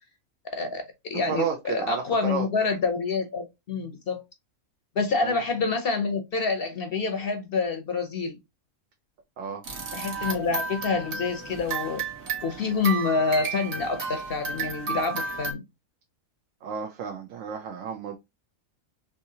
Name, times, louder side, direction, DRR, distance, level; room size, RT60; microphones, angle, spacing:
voice 1, 0.5-0.8 1.1-4.2 5.0-8.4 9.9-12.0 12.4-15.6, left 4 dB, 55° left, 0.7 m, -27 dB
voice 2, 1.1-2.5 5.2-5.4 9.4-9.6 16.6-18.2, right 6 dB, 75° right, 1.0 m, -32 dB
sound 1, 9.6-15.5, right 4 dB, 55° right, 1.4 m, -33 dB
3.5 x 2.8 x 2.7 m
omnidirectional pair, 1.4 m